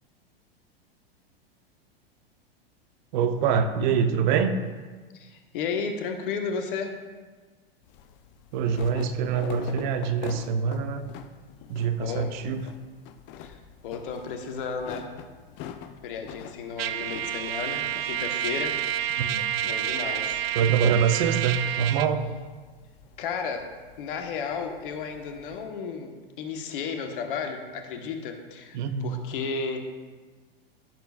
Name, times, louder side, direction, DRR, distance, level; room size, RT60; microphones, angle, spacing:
voice 1, 3.1-4.5 8.5-11.0 11.7-12.6 19.2-19.4 20.6-22.3 28.7-29.2, right 7 dB, 50° right, 9 dB, 0.8 m, -25 dB
voice 2, 5.2-7.0 12.0-12.3 13.4-13.6 13.8-15.1 16.0-18.8 19.6-20.4 23.2-23.7 24.0-29.8, left 5 dB, 60° left, 4 dB, 1.4 m, -33 dB
sound 1, 7.8-25.7, left 9 dB, 40° left, 0.7 m, -46 dB
Trumpet, 16.8-22.1, right 11 dB, 75° right, 0.5 m, -29 dB
15.0 x 6.9 x 2.5 m, 1.4 s
figure-of-eight pair, 95°, 30 cm